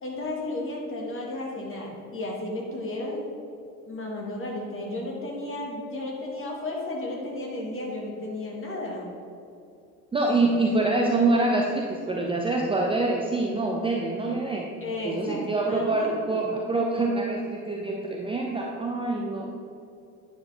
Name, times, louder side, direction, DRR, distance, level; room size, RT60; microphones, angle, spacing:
voice 1, 0.0-3.2 3.9-9.1 14.8-15.4 15.6-16.4, left 2 dB, 30° left, -1 dB, 2.0 m, -33 dB
voice 2, 10.1-14.7 15.0-19.6, right 2 dB, 10° right, -1 dB, 0.6 m, -25 dB
9.4 x 5.9 x 3.5 m, 2.6 s
figure-of-eight pair, 60°, 45 cm